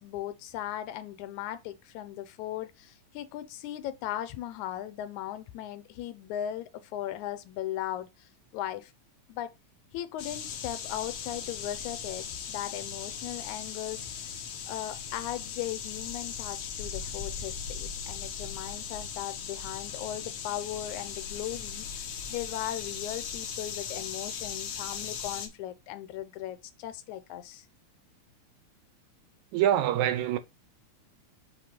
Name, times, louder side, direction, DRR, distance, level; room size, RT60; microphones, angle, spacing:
voice 1, 0.0-8.9 9.3-9.5 9.9-14.4 14.7-27.7, left 12 dB, 85° left, 2.1 m, -38 dB
sound 1, 10.2-25.5, left 7 dB, 65° left, 1.8 m, -38 dB
voice 2, 29.5-30.4, right 11 dB, 80° right, 2.1 m, -25 dB
7.6 x 2.9 x 4.9 m
omnidirectional pair, 3.4 m